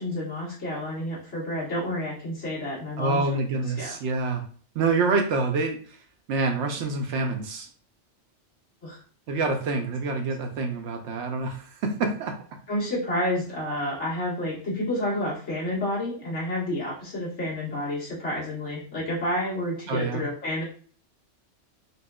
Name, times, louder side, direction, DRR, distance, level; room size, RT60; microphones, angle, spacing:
voice 1, 0.0-3.2 3.8-4.0 8.8-9.0 12.7-20.6, left 1 dB, 80° left, -7 dB, 1.8 m, -30 dB
voice 2, 3.0-4.5 4.7-6.0 6.3-7.7 9.3-12.6 19.9-20.3, right 3 dB, 75° right, 4 dB, 0.9 m, -27 dB
4.2 x 2.4 x 2.2 m, 0.43 s
omnidirectional pair, 1.2 m